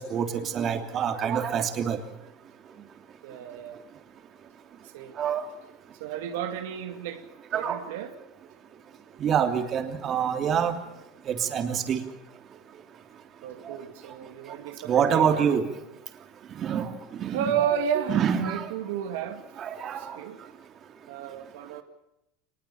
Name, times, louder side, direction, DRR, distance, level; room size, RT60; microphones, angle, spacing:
voice 1, 0.0-2.0 5.2-5.4 7.5-7.8 9.2-10.7 11.3-12.0 14.9-15.6 16.6-16.9 17.2-17.4 18.1-18.6 19.6-20.0, right 8 dB, 35° right, 3.1 m, -26 dB
voice 2, 3.2-3.8 4.9-5.2 6.0-7.2 7.5-8.2 13.4-15.5 17.3-19.4 19.9-20.4 21.1-21.8, right 8 dB, 80° right, 2.2 m, -32 dB
24.5 x 20.5 x 7.2 m
supercardioid pair, 120°, 0 cm